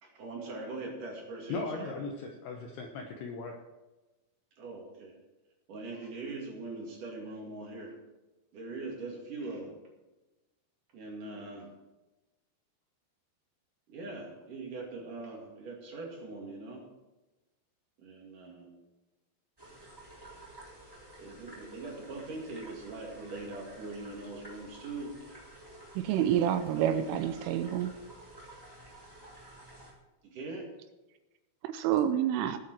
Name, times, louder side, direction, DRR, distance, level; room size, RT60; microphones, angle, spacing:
voice 1, 0.0-1.9 4.6-5.2 5.7-8.0 8.5-9.8 10.9-11.7 13.9-16.9 18.0-18.7 21.2-25.2 26.7-27.0 30.2-30.7, right 3 dB, 50° right, -1 dB, 3.1 m, -41 dB
voice 2, 1.5-3.5, left 4 dB, 80° left, 3 dB, 2.4 m, -38 dB
sound 1, 19.6-29.9, right 1 dB, 5° right, 3.0 m, -51 dB
voice 3, 26.0-27.9 31.6-32.6, right 10 dB, 80° right, 10 dB, 3.0 m, -28 dB
19.5 x 7.7 x 4.5 m, 1.1 s
omnidirectional pair, 5.9 m